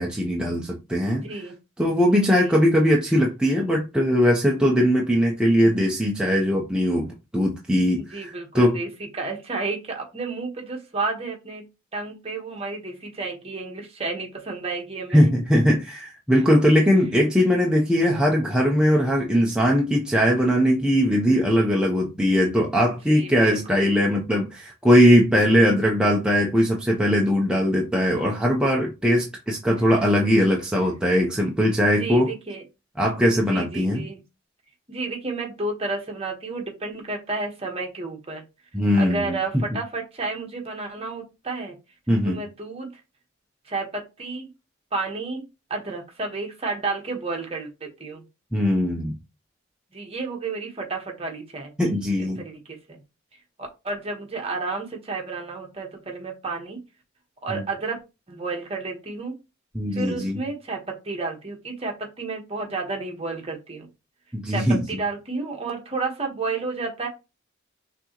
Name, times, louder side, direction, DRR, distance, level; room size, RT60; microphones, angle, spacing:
voice 1, 0.0-1.2 1.8-8.8 15.1-32.3 33.0-34.1 38.7-39.6 42.1-42.4 48.5-49.1 51.8-52.4 57.5-57.6 59.7-60.4 64.3-64.8, equal, 5° right, 0.6 m, -20 dB
voice 2, 1.1-1.6 2.3-2.6 8.0-8.9 9.1-11.6 11.9-15.3 22.8-23.9 32.0-32.6 33.5-34.2 34.9-38.4 39.0-41.7 42.2-43.0 43.6-44.5 44.9-48.2 49.9-51.7 52.4-53.0 53.6-56.8 57.4-58.0 58.3-59.4 59.9-63.9 64.5-67.1, right 3 dB, 30° right, 1.3 m, -31 dB
5.9 x 2.9 x 2.9 m
head